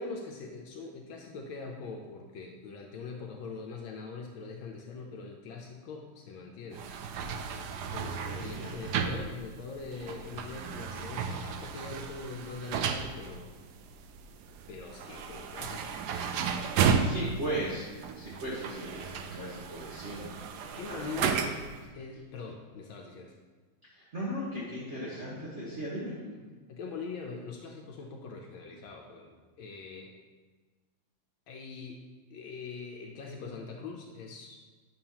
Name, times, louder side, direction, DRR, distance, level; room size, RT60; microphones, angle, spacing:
voice 1, 0.0-6.9 7.9-13.5 14.7-16.2 16.7-17.3 20.6-21.6 21.9-23.4 26.2-30.2 31.5-32.0 32.3-34.6, left 4 dB, 75° left, 1 dB, 1.5 m, -43 dB
sound 1, 6.7-21.8, right 6 dB, 75° right, 0.9 m, -34 dB
voice 2, 8.3-8.7 15.5-15.6 17.0-17.8 18.1-21.3 23.9-26.1, right 1 dB, 40° right, -7 dB, 1.4 m, -37 dB
9.6 x 7.2 x 2.9 m, 1.4 s
omnidirectional pair, 2.3 m